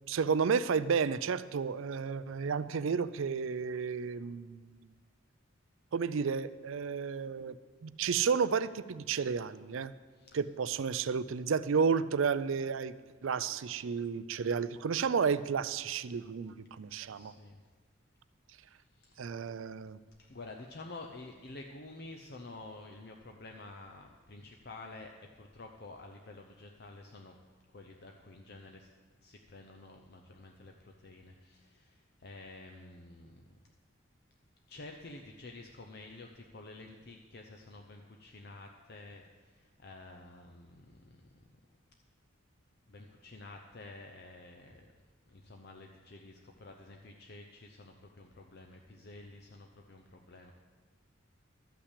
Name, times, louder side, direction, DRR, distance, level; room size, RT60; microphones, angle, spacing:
voice 1, 0.1-4.8 5.9-7.6 7.8-9.9 10.3-12.9 13.2-17.3 19.2-20.0, right 6 dB, 70° right, 15 dB, 0.4 m, -32 dB
voice 2, 17.1-17.6 18.7-19.2 20.2-27.3 27.7-28.9 29.2-33.5 34.7-41.5 42.9-44.9 45.3-50.5, left 2 dB, 50° left, 3 dB, 0.7 m, -50 dB
12.5 x 5.8 x 8.3 m, 1.4 s
head